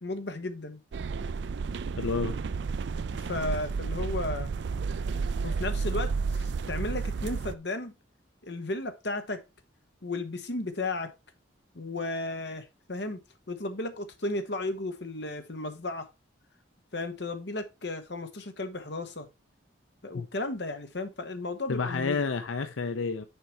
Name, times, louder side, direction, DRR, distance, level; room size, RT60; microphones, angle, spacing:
voice 1, 0.0-0.8 3.2-4.5 5.4-7.9 8.4-9.4 10.0-11.1 11.7-13.2 13.5-16.1 16.9-19.3 20.0-22.2, left 2 dB, 60° left, 1.2 m, -34 dB
sound 1, 0.9-7.6, right 4 dB, 65° right, 0.4 m, -31 dB
voice 2, 2.0-2.4 20.1-20.3 21.7-23.2, left 4 dB, 90° left, 0.6 m, -30 dB
6.7 x 4.9 x 4.5 m
head